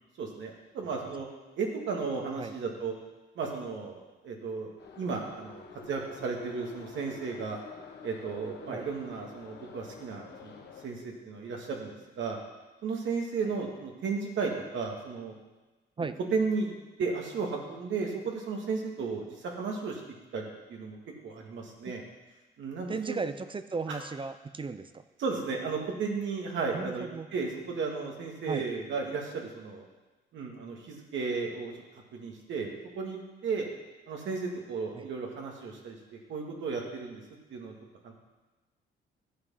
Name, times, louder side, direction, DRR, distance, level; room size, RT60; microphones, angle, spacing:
voice 1, 0.2-1.3 1.6-2.9 3.4-4.7 5.0-7.6 8.0-12.4 12.8-15.3 16.0-16.1 16.3-16.7 17.0-20.0 20.3-21.0 21.2-22.0 22.6-23.2 23.9-24.0 25.2-29.8 30.3-31.7 32.1-33.7 34.1-37.2 37.5-37.7 38.0-38.1, right 4 dB, 70° right, 0 dB, 2.1 m, -34 dB
Subway metro underground, 4.8-10.9, left 6 dB, 60° left, 1.4 m, -48 dB
voice 2, 22.9-25.0 26.7-27.3 28.5-28.6 34.9-35.1, right 4 dB, 25° right, 11 dB, 0.6 m, -36 dB
11.5 x 7.5 x 5.7 m, 1.2 s
cardioid pair, 90°, 20 cm